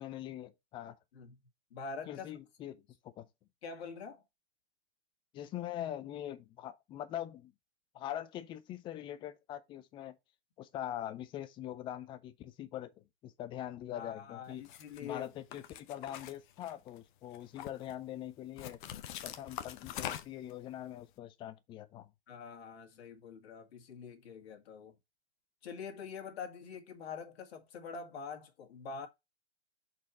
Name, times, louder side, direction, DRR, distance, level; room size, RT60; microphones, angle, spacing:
voice 1, 0.0-1.0 2.1-3.3 5.3-7.5 7.9-10.2 10.6-14.6 15.0-18.8 19.2-22.1, left 12 dB, 15° left, 0.4 m, -43 dB
voice 2, 1.7-2.3 3.6-4.2 13.9-15.3 22.3-24.9 25.6-29.1, left 5 dB, 60° left, 2.0 m, -45 dB
sound 1, 14.6-15.0 15.5-17.0 17.3-17.9 18.6-20.5, left 11 dB, 45° left, 0.8 m, -43 dB
6.2 x 4.2 x 4.2 m
hypercardioid pair, 120°, 35 cm